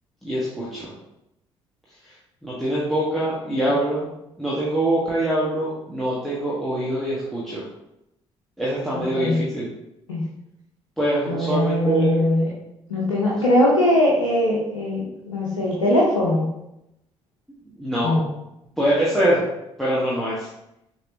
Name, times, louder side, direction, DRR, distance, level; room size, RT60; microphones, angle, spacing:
voice 1, 0.2-0.9 2.4-4.1 4.4-7.6 8.6-9.7 11.0-12.2 17.8-18.2 18.8-19.4 19.8-20.5, right 1 dB, ahead, -8 dB, 1.3 m, -24 dB
voice 2, 8.9-9.4 10.1-10.2 11.3-12.5 12.9-16.4 18.0-18.3, left 1 dB, 85° left, -5 dB, 0.7 m, -21 dB
6.5 x 3.1 x 2.7 m, 0.85 s
figure-of-eight pair, 45°, 16 cm